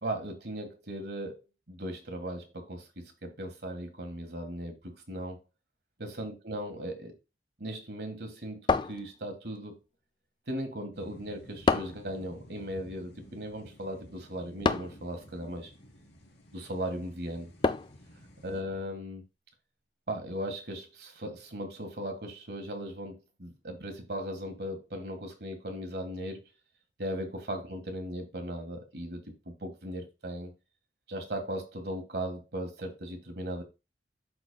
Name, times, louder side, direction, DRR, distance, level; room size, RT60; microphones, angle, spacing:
voice 1, 0.0-1.4 1.7-5.4 6.0-7.1 7.6-9.8 10.5-15.7 16.5-17.5 18.4-19.2 20.1-26.4 27.0-30.5 31.1-33.6, right 1 dB, 65° right, 1.5 m, -38 dB
sound 1, 8.7-9.6 11.7-12.1 14.6-15.1 17.6-18.1, left 4 dB, 25° left, 0.3 m, -28 dB
sound 2, 10.9-18.6, equal, 85° left, 2.3 m, -53 dB
11.5 x 4.1 x 2.2 m
head